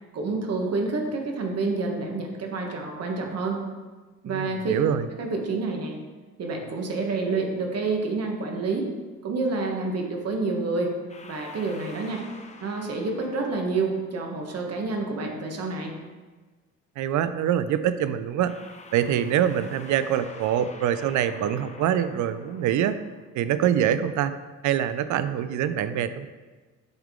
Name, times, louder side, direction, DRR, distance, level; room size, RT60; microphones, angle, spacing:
voice 1, 0.1-3.6 4.2-4.7 5.1-6.0 6.4-8.9 9.2-10.9 11.2-12.2 12.6-15.9, right 3 dB, 55° right, 2 dB, 1.2 m, -28 dB
voice 2, 4.3-5.1 17.0-18.5 18.9-23.0 23.3-24.3 24.6-26.3, right 10 dB, 75° right, 12 dB, 0.5 m, -24 dB
sound 1, 11.1-14.4 18.5-23.3, left 3 dB, 25° left, 0.6 m, -47 dB
7.9 x 3.6 x 3.6 m, 1.3 s
cardioid pair, 90°, 30 cm